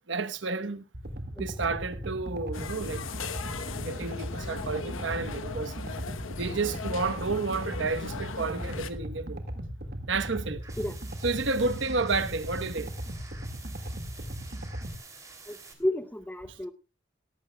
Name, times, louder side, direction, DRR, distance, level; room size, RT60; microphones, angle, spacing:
voice 1, 0.1-0.8 1.4-3.0 3.8-5.7 6.4-9.4 10.1-10.6 11.2-12.9 16.5-16.6, right 3 dB, 70° right, 1.1 m, -31 dB
sound 1, 0.9-15.0, equal, 50° right, 1.9 m, -38 dB
sound 2, 2.5-8.9, left 4 dB, 85° left, 1.0 m, -39 dB
sound 3, 10.6-15.7, right 4 dB, 15° right, 2.9 m, -49 dB
voice 2, 15.5-16.7, left 1 dB, 10° left, 0.7 m, -32 dB
18.0 x 14.5 x 2.3 m
head